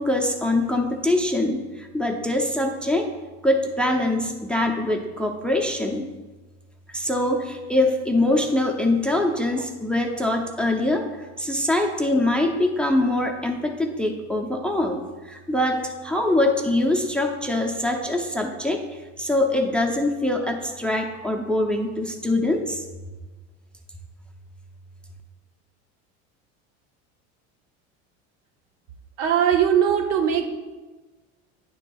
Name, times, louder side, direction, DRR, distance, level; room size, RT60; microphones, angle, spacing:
voice 1, 0.0-3.1 3.4-6.1 6.9-22.8, left 1 dB, 5° left, 3 dB, 0.6 m, -23 dB
voice 2, 29.2-30.5, right 8 dB, 65° right, 5 dB, 1.0 m, -20 dB
9.8 x 6.5 x 2.3 m, 1.2 s
supercardioid pair, 105°, 34 cm